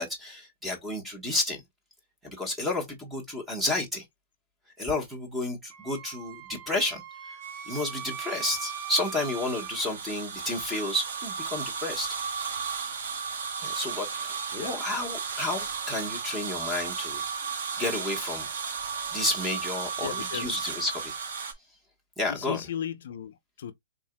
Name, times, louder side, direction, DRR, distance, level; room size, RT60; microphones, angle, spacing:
voice 1, 0.0-1.6 2.2-4.0 4.8-7.3 7.7-12.2 13.6-17.2 17.8-18.5 19.1-21.1 22.2-22.6, left 2 dB, 5° right, 1.2 m, -31 dB
Wind instrument woodwind instrument, 5.7-9.9, right 9 dB, 30° right, 0.7 m, -41 dB
sound 1, 7.4-21.5, right 6 dB, 55° right, 1.2 m, -35 dB
voice 2, 20.0-20.5 22.3-23.7, left 9 dB, 55° left, 0.5 m, -35 dB
4.5 x 3.8 x 2.2 m
hypercardioid pair, 170°, 0 cm